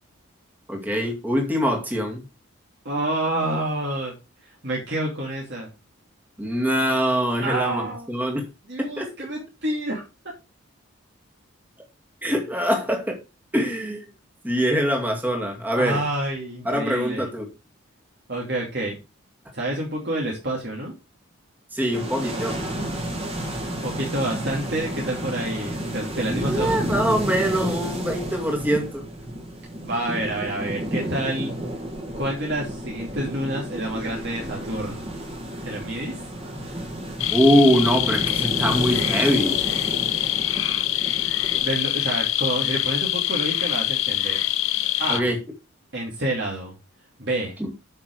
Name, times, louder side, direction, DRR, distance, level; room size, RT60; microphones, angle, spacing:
voice 1, 0.7-2.2 6.4-8.5 8.8-9.1 12.2-13.2 13.5-14.1 14.4-16.0 16.6-17.5 21.7-22.6 26.3-29.1 37.3-39.6 45.1-45.4 47.6-47.7, equal, 10° right, 1 dB, 2.2 m, -23 dB
voice 2, 2.8-4.1 4.6-5.7 7.4-8.1 8.7-10.3 15.8-17.3 18.3-19.0 19.5-20.9 23.8-26.9 29.8-31.5 32.1-35.1 35.6-36.2 41.5-44.4 45.0-45.3 45.9-46.7 47.2-47.6, right 1 dB, 50° right, -3 dB, 2.8 m, -28 dB
sound 1, 21.9-41.7, right 1 dB, 25° right, 2.4 m, -31 dB
sound 2, 37.2-45.2, left 13 dB, 70° left, 0.7 m, -24 dB
8.7 x 6.0 x 4.8 m, 0.27 s
head